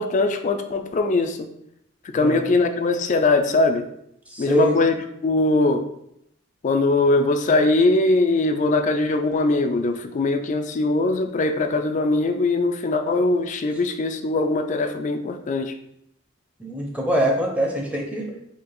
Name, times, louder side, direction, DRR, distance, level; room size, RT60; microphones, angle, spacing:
voice 1, 0.0-1.5 2.1-3.8 4.4-4.9 5.2-5.8 6.6-15.7, left 2 dB, 40° left, 6 dB, 0.4 m, -21 dB
voice 2, 4.3-4.7 16.6-18.3, equal, 5° right, 0 dB, 0.7 m, -23 dB
4.0 x 2.9 x 4.3 m, 0.76 s
head